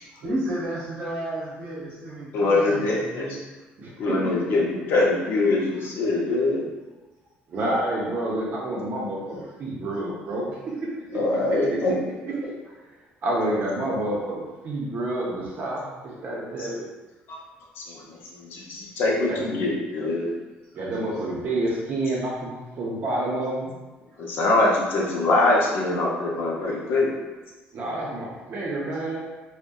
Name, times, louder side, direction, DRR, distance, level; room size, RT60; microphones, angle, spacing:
voice 1, 0.2-3.4, right 1 dB, 85° right, -7 dB, 0.8 m, -32 dB
voice 2, 2.3-3.4 4.0-6.7 11.1-11.9 16.6-16.7 17.3-17.4 17.8-20.3 24.2-27.1, left 2 dB, 65° left, -3 dB, 0.6 m, -23 dB
voice 3, 3.8-4.2 7.5-10.9 11.5-11.6 12.2-12.3 12.6-12.7 13.2-16.9 19.3-19.5 20.7-23.7 27.7-29.2, right 1 dB, 45° right, -3 dB, 0.6 m, -29 dB
2.6 x 2.1 x 2.2 m, 1.2 s
cardioid pair, 130°, 4 cm